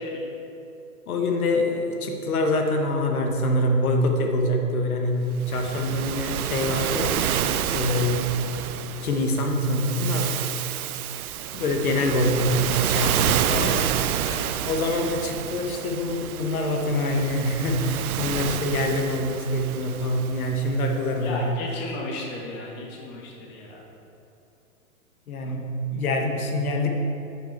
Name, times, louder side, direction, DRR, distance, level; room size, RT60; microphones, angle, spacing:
voice 1, 1.1-7.3 7.7-8.4 9.0-10.4 11.5-13.8 14.7-21.6 25.3-27.0, left 1 dB, 70° left, 3 dB, 1.1 m, -25 dB
Waves surf, 5.4-20.9, right 10 dB, 75° right, 0.5 m, -29 dB
voice 2, 21.2-23.8, left 2 dB, 25° left, -1 dB, 1.1 m, -34 dB
8.6 x 5.2 x 4.5 m, 2.8 s
hypercardioid pair, 130°, 45 cm